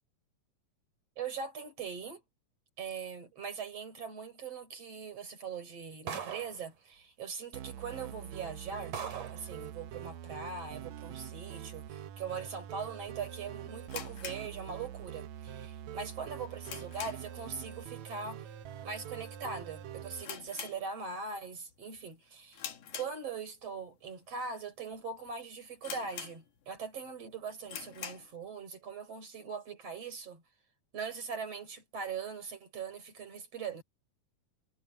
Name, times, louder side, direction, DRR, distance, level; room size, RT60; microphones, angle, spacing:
voice 1, 1.2-2.2 2.8-9.0 9.3-18.5 18.8-22.7 22.9-30.4 30.9-33.8, right 5 dB, 50° right, 6.2 m, -41 dB
sound 1, 6.1-6.6 7.7-7.8 8.3-8.4 8.9-9.5, right 7 dB, 90° right, 4.4 m, -39 dB
sound 2, 7.5-20.2, right 10 dB, 75° right, 2.2 m, -45 dB
sound 3, 13.9-15.2 15.5-15.6 16.1-17.5 17.8-18.1 18.3-18.4 19.1-19.4 19.7-19.8 20.2-21.4 21.7-22.0 22.5-23.7 24.2-24.3 24.9-25.0 25.3-25.4 25.8-26.8 27.2-27.3 27.6-28.4, left 8 dB, 85° left, 3.4 m, -44 dB
omnidirectional pair, 3.5 m